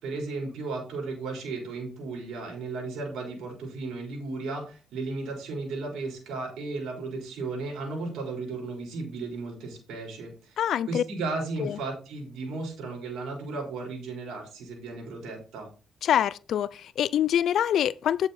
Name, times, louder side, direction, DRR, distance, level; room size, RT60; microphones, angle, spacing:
voice 1, 0.0-10.6 10.9-15.7, right 3 dB, 80° right, 4.3 m, -35 dB
voice 2, 10.6-11.0 11.6-11.8 16.0-18.3, left 10 dB, 70° left, 0.4 m, -25 dB
9.5 x 6.8 x 4.2 m
cardioid pair, 90°, 0 cm